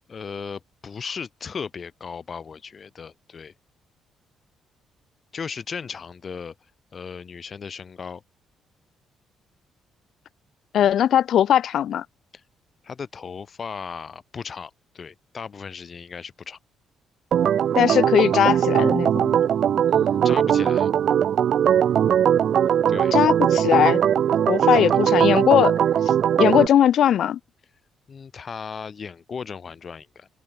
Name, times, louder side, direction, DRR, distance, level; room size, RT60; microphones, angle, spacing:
voice 1, 0.1-3.5 5.3-6.5 6.9-8.2 12.8-16.6 19.9-20.9 22.9-23.1 24.8-25.0 28.1-30.3, left 6 dB, 35° left, 3.8 m, -36 dB
voice 2, 10.7-12.0 17.7-19.2 23.1-24.0 24.5-25.8 26.4-27.4, left 10 dB, 65° left, 0.6 m, -19 dB
Organ, 17.3-26.7, right 9 dB, 55° right, 0.3 m, -20 dB
cardioid pair, 125°, 0 cm